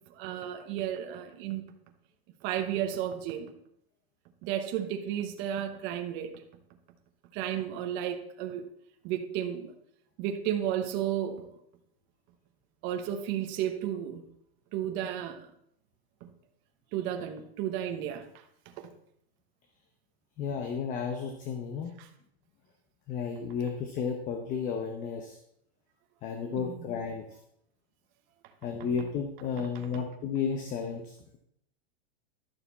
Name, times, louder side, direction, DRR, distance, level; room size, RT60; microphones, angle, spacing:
voice 1, 0.1-1.6 2.4-3.5 4.4-6.3 7.3-8.6 9.0-9.7 10.2-11.5 12.8-14.2 14.7-15.4 16.2-16.3 16.9-18.3 18.7-18.9 22.0-22.1 26.6-26.9 28.8-28.9 29.6-29.9, right 10 dB, 35° right, 5 dB, 1.1 m, -33 dB
voice 2, 20.4-21.9 23.1-25.4 26.2-27.2 28.6-31.2, left 6 dB, 25° left, 5 dB, 0.8 m, -33 dB
11.5 x 6.6 x 4.1 m, 0.73 s
supercardioid pair, 155°, 32 cm